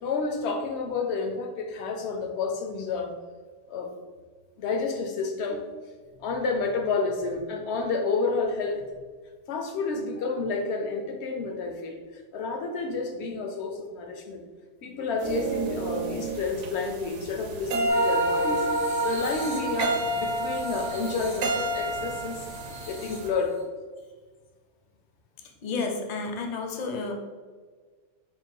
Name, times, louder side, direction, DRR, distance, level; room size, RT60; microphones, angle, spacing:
voice 1, 0.0-3.2 3.7-3.9 4.6-5.6 6.2-8.8 9.5-14.4 14.8-18.7 19.0-23.6, left 4 dB, 70° left, 5 dB, 0.8 m, -30 dB
sound 1, 15.2-23.3, right 1 dB, 85° right, 1.0 m, -30 dB
sound 2, 17.9-23.6, right 3 dB, 85° left, 2.0 m, -33 dB
voice 2, 25.6-27.1, left 4 dB, 50° left, 2 dB, 0.6 m, -31 dB
3.7 x 2.2 x 4.4 m, 1.5 s
omnidirectional pair, 1.2 m